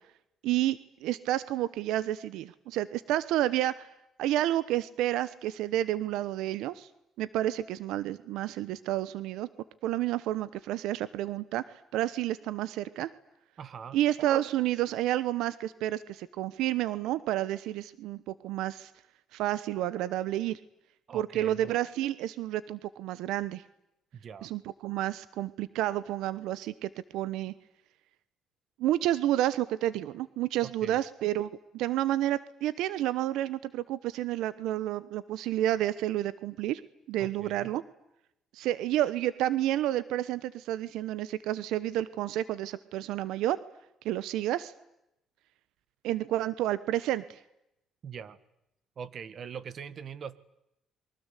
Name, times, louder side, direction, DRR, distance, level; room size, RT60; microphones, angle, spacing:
voice 1, 0.4-3.9 4.2-6.9 7.2-9.5 9.8-13.1 13.9-18.9 19.3-20.6 21.1-23.6 24.4-27.5 28.8-36.8 37.1-37.8 38.5-43.6 44.0-44.7 46.0-47.4, right 13 dB, 90° right, 17 dB, 1.1 m, -30 dB
voice 2, 13.6-14.0 21.1-21.7 24.1-24.5 30.6-31.0 37.2-37.7 48.0-48.4 49.0-50.4, right 7 dB, 50° right, 16 dB, 1.9 m, -42 dB
29.0 x 23.5 x 8.4 m, 0.84 s
cardioid pair, 110°, 0 cm